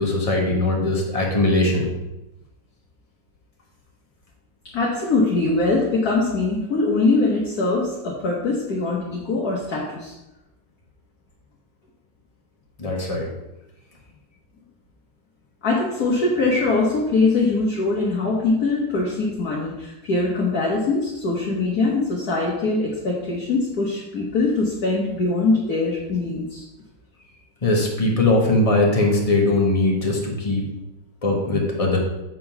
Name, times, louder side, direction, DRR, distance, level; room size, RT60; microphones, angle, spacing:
voice 1, 0.0-1.9 12.8-13.3 27.6-30.7 31.2-32.0, left 2 dB, 20° left, -1 dB, 1.2 m, -20 dB
voice 2, 4.7-10.1 15.6-26.6, left 3 dB, 55° left, -4 dB, 1.6 m, -22 dB
7.7 x 3.7 x 5.8 m, 0.95 s
omnidirectional pair, 2.1 m